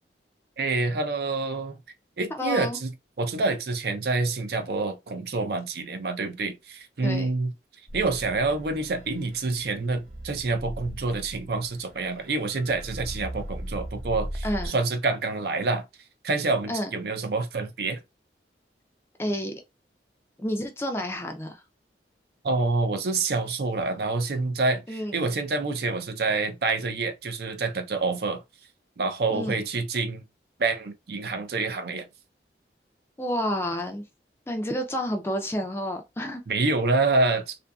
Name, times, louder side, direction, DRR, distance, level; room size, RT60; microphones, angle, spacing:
voice 1, 0.6-1.8 2.2-2.9 3.2-7.5 7.9-15.8 16.2-18.0 22.4-28.4 29.0-30.2 30.6-32.1 36.5-37.6, right 3 dB, 60° right, 0.5 m, -27 dB
voice 2, 2.3-2.8 7.0-7.3 14.4-14.7 16.7-16.9 19.2-19.5 20.4-21.6 24.9-25.2 29.3-29.6 33.2-34.0 34.5-36.4, equal, 15° left, 0.4 m, -30 dB
sound 1, 7.9-14.7, right 1 dB, 30° right, 1.1 m, -38 dB
2.7 x 2.5 x 2.2 m
head